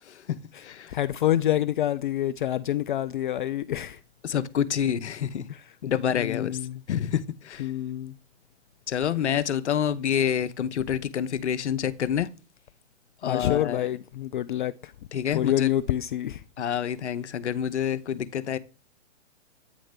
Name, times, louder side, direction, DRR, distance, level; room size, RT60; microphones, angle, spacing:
voice 1, 0.0-0.9 4.2-5.5 5.8-6.6 6.9-7.7 8.9-12.3 13.2-13.9 15.1-15.7 16.6-18.6, left 9 dB, 70° left, 0.8 m, -28 dB
voice 2, 0.9-4.0 5.5-5.6 6.1-6.8 7.6-8.2 13.2-14.9 15.3-16.4, left 12 dB, 45° left, 0.4 m, -27 dB
9.0 x 3.0 x 5.1 m
figure-of-eight pair, 125°, 35 cm